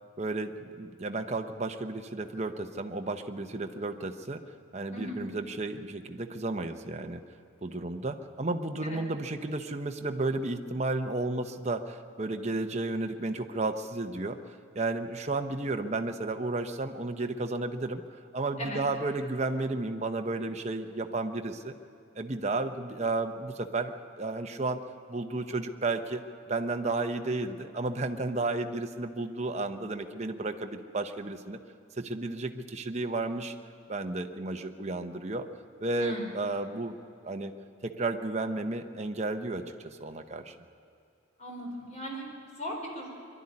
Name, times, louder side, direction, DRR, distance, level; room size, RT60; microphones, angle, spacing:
voice 1, 0.2-4.4 4.7-7.2 7.6-18.0 18.3-21.7 22.1-24.8 25.1-26.2 26.5-31.6 32.0-33.5 33.9-35.5 35.8-37.0 37.2-37.5 37.8-40.5, right 2 dB, 35° right, 6 dB, 0.9 m, -33 dB
voice 2, 36.0-36.3 41.4-42.3 42.6-43.1, equal, 35° left, 0 dB, 4.2 m, -37 dB
22.5 x 12.0 x 9.7 m, 2.4 s
head